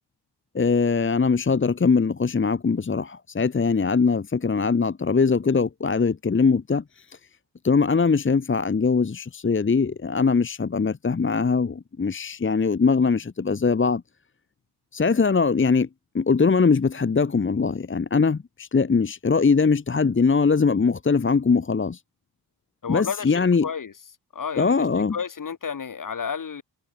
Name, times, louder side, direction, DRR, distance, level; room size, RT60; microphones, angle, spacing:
voice 1, 0.5-7.2 7.6-14.0 14.9-15.9 16.1-22.0 22.9-23.7 24.6-25.2, left 5 dB, 30° left, 1.2 m, -21 dB
voice 2, 22.8-23.9 24.3-24.9 25.1-26.6, left 6 dB, 50° left, 2.8 m, -31 dB
cardioid pair, 65°, 42 cm